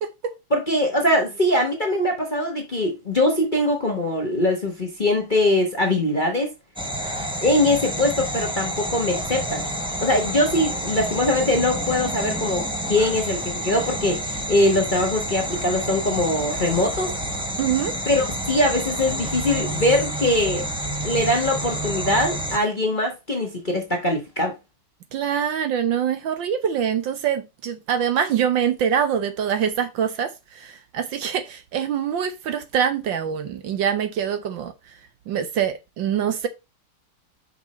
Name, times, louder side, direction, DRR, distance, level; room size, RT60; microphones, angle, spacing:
voice 1, 0.5-6.5 7.4-9.6 10.0-17.1 18.1-20.7 21.0-24.5, left 1 dB, 30° left, 1.1 m, -22 dB
sound 1, 6.8-22.6, right 1 dB, 5° right, 0.4 m, -29 dB
voice 2, 17.6-17.9 25.1-34.7 35.3-36.5, right 8 dB, 65° right, 1.5 m, -24 dB
5.9 x 5.4 x 4.1 m
omnidirectional pair, 2.4 m